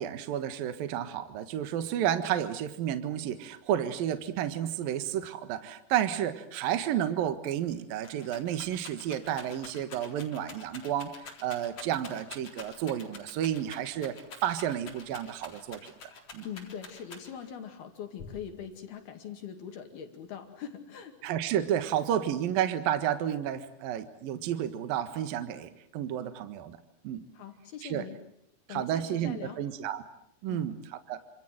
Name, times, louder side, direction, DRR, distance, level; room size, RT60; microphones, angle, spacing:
voice 1, 0.0-15.9 16.3-16.5 21.2-26.8 27.0-27.2 27.8-28.1 28.7-30.0 30.4-30.7 31.1-31.2, right 10 dB, 65° right, 11 dB, 2.9 m, -31 dB
Rattle, 7.3-7.4 7.6-17.6 18.2-18.8, left 4 dB, 35° left, 4.6 m, -47 dB
voice 2, 16.4-21.2 27.3-28.2 28.7-29.6 30.5-30.7, left 8 dB, 65° left, 6 dB, 4.0 m, -42 dB
28.5 x 26.5 x 7.8 m, 0.72 s
omnidirectional pair, 5.0 m